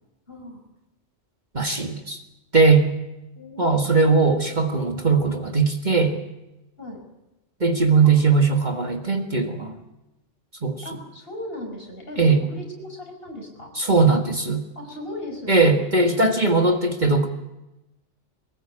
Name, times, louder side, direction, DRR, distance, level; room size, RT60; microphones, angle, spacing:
voice 1, 0.3-0.6 3.4-4.1 6.8-7.0 8.0-8.4 8.7-8.8 10.8-13.7 14.8-15.6, left 1 dB, 50° left, 2 dB, 6.0 m, -37 dB
voice 2, 1.5-2.2 2.5-2.9 3.6-6.1 7.6-9.8 10.6-10.8 12.2-12.4 13.8-14.6 15.5-17.3, right 4 dB, 35° right, 5 dB, 1.8 m, -19 dB
22.5 x 20.0 x 8.6 m, 0.99 s
omnidirectional pair, 1.3 m